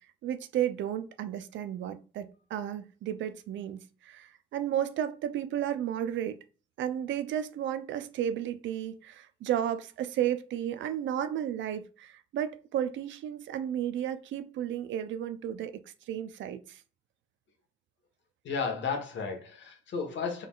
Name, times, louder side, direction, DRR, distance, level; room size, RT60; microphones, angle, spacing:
voice 1, 0.2-6.4 6.8-15.8 16.1-16.8, right 10 dB, 65° right, 0.5 m, -33 dB
voice 2, 18.4-20.4, left 5 dB, 60° left, 1.3 m, -33 dB
3.9 x 3.6 x 2.4 m
supercardioid pair, 60°, 21 cm